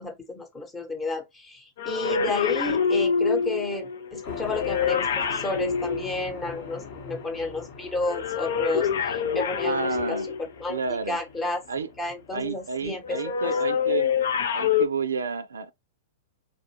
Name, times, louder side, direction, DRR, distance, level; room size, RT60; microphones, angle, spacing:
voice 1, 0.0-10.2 10.6-11.7 12.0-13.6, left 2 dB, 15° left, 0.9 m, -32 dB
sound 1, 1.8-6.8 8.0-10.6 13.0-14.9, left 7 dB, 75° left, 0.5 m, -26 dB
sound 2, 4.2-14.4, left 5 dB, 55° left, 0.9 m, -42 dB
voice 2, 9.6-10.3 10.7-11.2 11.7-11.9 12.3-14.1 14.5-15.7, right 5 dB, 90° right, 0.4 m, -30 dB
3.3 x 2.5 x 2.7 m
hypercardioid pair, 115°, 0 cm